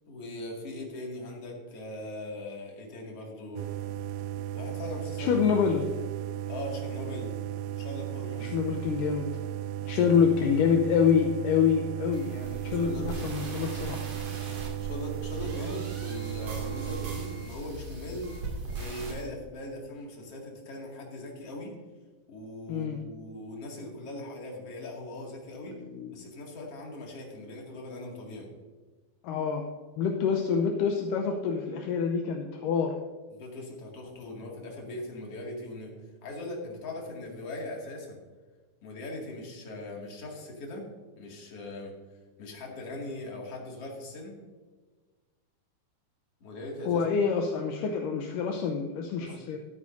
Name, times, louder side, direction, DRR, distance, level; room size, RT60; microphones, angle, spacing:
voice 1, 0.1-3.8 4.5-5.3 6.5-7.3 7.8-8.6 10.0-10.2 12.6-13.1 14.8-18.3 18.7-21.7 22.3-25.8 26.1-28.5 33.3-35.9 36.2-38.2 38.8-40.8 41.2-41.9 42.4-44.3 46.4-47.0 49.2-49.4, left 1 dB, 45° left, -2 dB, 2.9 m, -40 dB
sound 1, 3.6-17.5, right 11 dB, 80° right, 2.2 m, -35 dB
voice 2, 5.2-5.9 8.4-9.3 9.9-14.0 22.7-23.0 25.7-26.1 29.2-29.6 30.0-32.9 46.9-49.6, left 6 dB, 75° left, 3 dB, 2.2 m, -26 dB
sound 2, 12.1-19.2, right 3 dB, 50° right, 3.5 m, -40 dB
13.5 x 13.0 x 2.7 m, 1.3 s
omnidirectional pair, 4.3 m